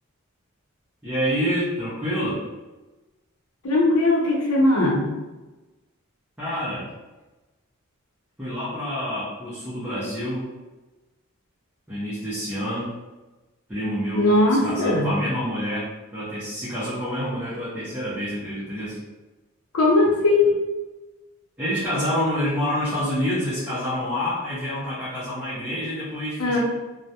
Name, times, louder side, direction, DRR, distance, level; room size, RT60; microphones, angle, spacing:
voice 1, 1.0-2.4 6.4-6.9 8.4-10.5 11.9-12.9 13.7-19.0 21.6-26.6, equal, 10° right, -12 dB, 0.6 m, -27 dB
voice 2, 3.6-5.1 14.2-15.1 19.7-20.6 26.4-26.6, left 2 dB, 80° left, -3 dB, 0.6 m, -19 dB
2.3 x 2.1 x 2.7 m, 1.1 s
head